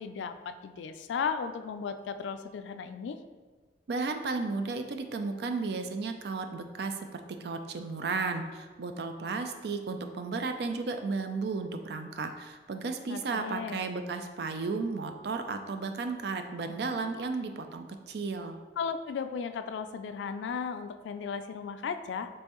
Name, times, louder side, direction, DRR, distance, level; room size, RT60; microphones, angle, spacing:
voice 1, 0.0-3.2 13.1-13.8 18.8-22.3, left 6 dB, 85° left, 9 dB, 0.3 m, -35 dB
voice 2, 3.9-18.6, right 4 dB, 65° right, 6 dB, 0.4 m, -34 dB
5.3 x 3.2 x 3.0 m, 1.4 s
head